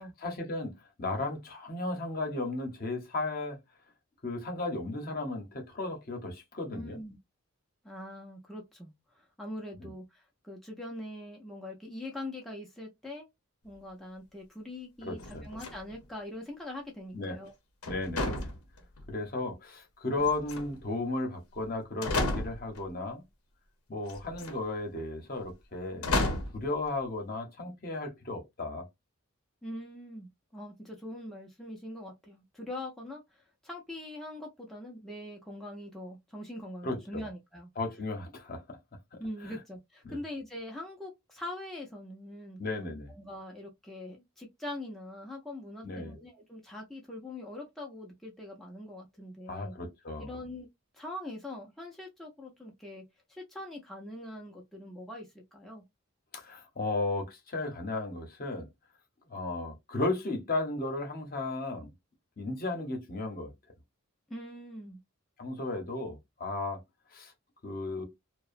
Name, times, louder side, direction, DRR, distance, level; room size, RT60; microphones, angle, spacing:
voice 1, 0.2-3.6 4.2-7.0 9.8-9.9 15.0-15.5 17.1-17.4 17.9-18.5 19.1-23.2 23.9-26.1 26.5-28.9 36.8-37.2 37.8-38.8 39.1-39.2 39.4-39.6 40.0-40.2 42.6-43.1 45.8-46.2 49.5-50.3 56.3-58.7 59.3-61.9 62.4-63.5 65.4-66.8 67.1-67.3 67.6-68.0, left 2 dB, 40° left, 0.7 m, -35 dB
voice 2, 6.7-7.2 7.8-13.3 13.6-17.5 29.6-37.7 39.2-42.6 43.1-49.8 50.2-50.7 50.9-53.0 53.3-55.8 64.3-65.0, left 1 dB, ahead, 0.4 m, -43 dB
sound 1, 15.2-16.1 17.8-19.1 20.2-20.9 21.6-21.7 22.0-22.8 24.1-24.6 26.0-26.7, left 2 dB, 90° left, 0.7 m, -32 dB
2.8 x 2.0 x 2.4 m
head